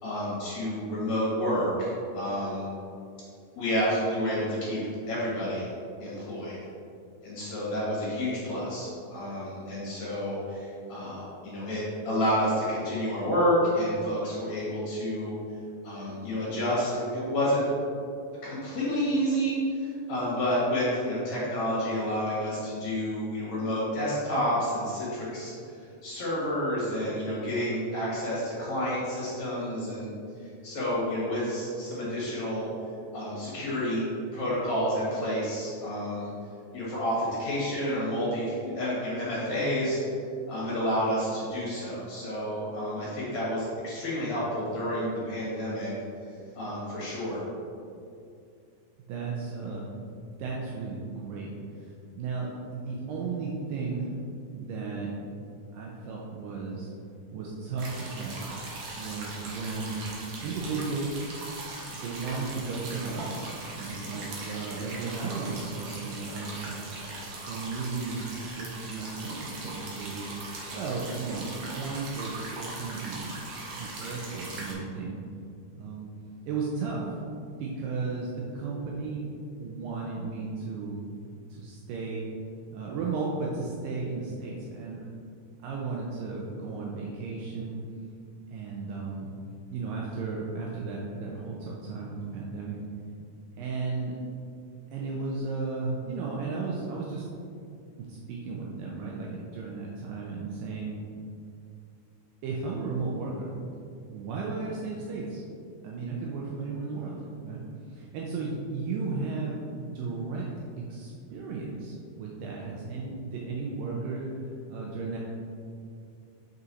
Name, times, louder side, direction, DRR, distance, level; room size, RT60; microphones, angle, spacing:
voice 1, 0.0-2.7 3.6-4.8 5.1-5.7 6.0-6.6 7.2-15.4 15.8-17.7 18.4-25.7 26.0-30.1 30.6-32.7 33.1-34.0 34.3-36.3 36.7-40.0 40.5-45.9 46.6-47.4, equal, 55° left, -7 dB, 2.8 m, -29 dB
voice 2, 49.1-49.9 50.4-51.5 51.8-54.1 54.5-55.1 55.7-56.9 57.3-58.4 59.0-61.2 61.8-66.9 67.5-68.3 68.5-70.3 70.7-73.3 73.7-75.2 75.8-76.1 76.4-77.0 77.4-79.2 79.6-81.1 81.5-82.3 82.7-85.0 85.6-87.8 88.5-89.3 89.7-92.8 93.6-94.2 94.9-97.2 98.1-101.0 102.4-103.5 104.1-105.4 105.8-107.6 107.9-109.6 109.9-110.5 110.9-114.3 114.7-115.2, right 4 dB, 80° right, -3 dB, 2.2 m, -34 dB
sound 1, 57.8-74.7, right 2 dB, 60° right, 1.8 m, -40 dB
6.3 x 5.5 x 4.1 m, 2.4 s
omnidirectional pair, 4.4 m